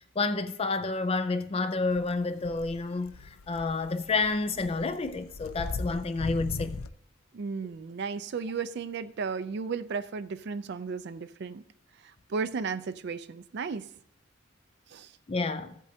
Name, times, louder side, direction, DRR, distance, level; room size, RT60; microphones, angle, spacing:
voice 1, 0.2-6.8 15.3-15.8, left 3 dB, 30° left, 0.4 m, -29 dB
sound 1, 1.9-2.1 2.4-6.9, left 3 dB, 85° left, 0.5 m, -39 dB
voice 2, 7.3-11.6 12.0-13.9 14.9-15.1, right 5 dB, 55° right, 0.4 m, -34 dB
14.0 x 8.3 x 2.8 m
head